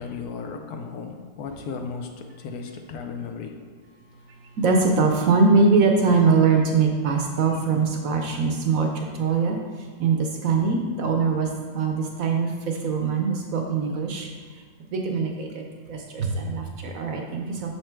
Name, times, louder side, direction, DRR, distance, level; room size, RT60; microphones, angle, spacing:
voice 1, 0.0-3.7, left 5 dB, 70° left, 4 dB, 1.1 m, -35 dB
voice 2, 4.3-14.6 14.9-17.7, right 4 dB, 65° right, 2 dB, 0.9 m, -23 dB
6.3 x 4.4 x 4.5 m, 1.5 s
omnidirectional pair, 1.8 m